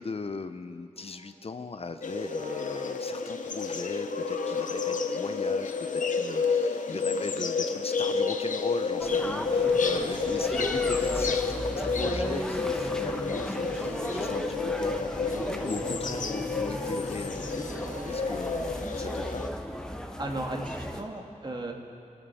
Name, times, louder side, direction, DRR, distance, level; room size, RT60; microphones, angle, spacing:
voice 1, 0.0-19.4, left 4 dB, 50° left, 9 dB, 0.6 m, -38 dB
sound 1, 0.9-19.3, right 3 dB, 80° right, 1.3 m, -48 dB
sound 2, 2.0-19.5, left 4 dB, 80° left, 0.8 m, -30 dB
sound 3, 9.0-21.0, equal, 5° left, 1.1 m, -35 dB
voice 2, 20.2-21.7, right 2 dB, 35° right, 1 dB, 1.9 m, -35 dB
24.0 x 12.5 x 4.2 m, 2.6 s
wide cardioid pair, 75°, 13 cm